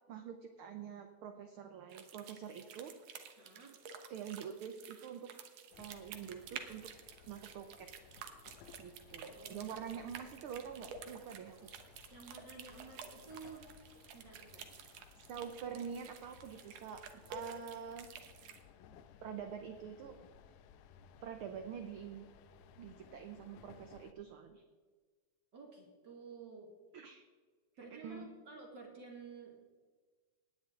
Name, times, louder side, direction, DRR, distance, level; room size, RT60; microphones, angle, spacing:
voice 1, 0.1-2.9 4.1-5.3 5.8-6.9 7.3-7.9 8.8-11.7 15.2-17.0 17.3-18.1 19.2-20.2 21.2-22.3 22.8-24.6 26.9-27.2 27.8-28.3, right 7 dB, 85° right, 6 dB, 1.2 m, -46 dB
sound 1, 1.9-18.6, right 6 dB, 65° right, 2.1 m, -52 dB
voice 2, 3.4-3.8 9.4-9.9 12.1-13.7 14.1-14.7 25.5-26.7 27.8-29.7, right 4 dB, 45° right, 0 dB, 1.9 m, -52 dB
sound 2, 5.7-24.1, left 7 dB, 75° left, 1.9 m, -60 dB
18.0 x 9.9 x 3.7 m, 1.5 s
omnidirectional pair, 3.4 m